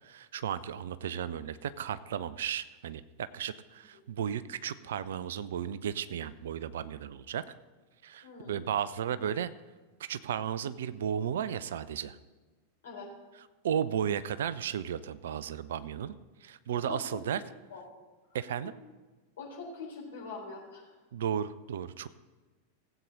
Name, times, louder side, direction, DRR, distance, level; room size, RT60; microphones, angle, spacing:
voice 1, 0.0-7.4 8.0-9.5 10.0-12.2 13.6-16.2 16.4-17.4 18.3-18.7 21.1-22.1, right 9 dB, 60° right, 15 dB, 0.5 m, -34 dB
voice 2, 8.2-8.7 12.8-13.1 16.9-17.2 17.7-17.8 18.3-18.4 18.6-18.7 19.4-21.0, left 4 dB, 60° left, -3 dB, 3.8 m, -43 dB
17.5 x 8.1 x 4.0 m, 1.3 s
figure-of-eight pair, 90°, 0 cm